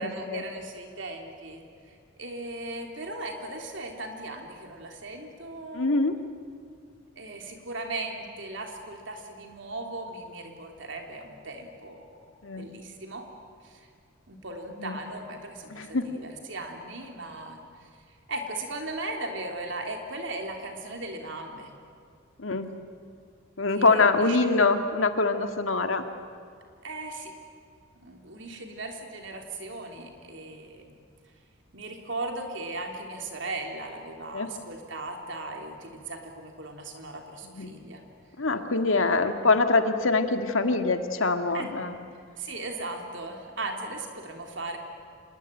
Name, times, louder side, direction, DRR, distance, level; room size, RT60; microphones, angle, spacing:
voice 1, 0.0-6.0 7.2-13.3 13.6-13.9 14.3-17.9 18.3-21.7 23.7-24.5 26.8-27.3 27.9-31.0 31.7-38.0 41.5-41.7 42.4-44.8, right 2 dB, 65° right, 3 dB, 3.4 m, -38 dB
voice 2, 5.7-6.2 12.4-12.7 14.8-15.0 15.7-16.1 22.4-22.7 23.6-26.1 34.3-34.5 37.5-37.7 38.4-41.9, left 3 dB, 85° left, 7 dB, 1.9 m, -24 dB
26.0 x 20.5 x 9.1 m, 2.3 s
head